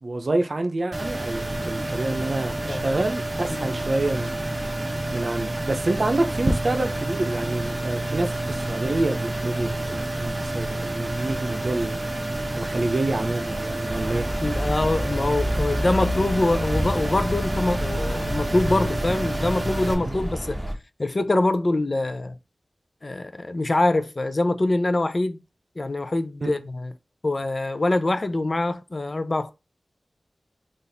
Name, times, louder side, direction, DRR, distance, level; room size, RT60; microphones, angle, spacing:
voice 1, 0.0-4.5 5.1-12.0 12.6-14.3 20.0-20.3 26.4-26.5, right 2 dB, 60° right, 0.6 m, -27 dB
sound 1, 0.9-19.9, right 1 dB, 30° right, 0.9 m, -29 dB
sound 2, 13.9-20.7, equal, 10° right, 1.4 m, -29 dB
voice 2, 14.4-20.6 21.0-22.4 23.0-25.4 25.8-26.9 27.2-29.5, left 2 dB, 45° left, 0.5 m, -24 dB
4.0 x 2.5 x 3.4 m
wide cardioid pair, 55°, 0 cm